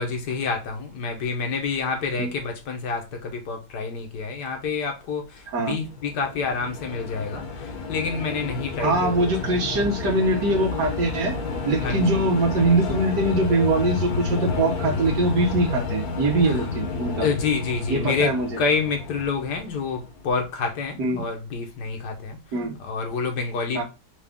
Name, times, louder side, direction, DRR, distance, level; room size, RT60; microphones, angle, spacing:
voice 1, 0.0-9.6 11.8-12.2 16.4-16.6 17.2-18.3 18.6-22.4 22.8-23.8, left 4 dB, 80° left, 1.6 m, -28 dB
sound 1, 5.7-20.2, left 4 dB, 65° left, 1.3 m, -30 dB
voice 2, 8.8-11.4 11.6-17.3 17.9-18.6 21.0-21.2 22.5-22.7 23.7-23.8, right 2 dB, 75° right, 1.7 m, -23 dB
4.9 x 2.5 x 3.4 m
omnidirectional pair, 1.8 m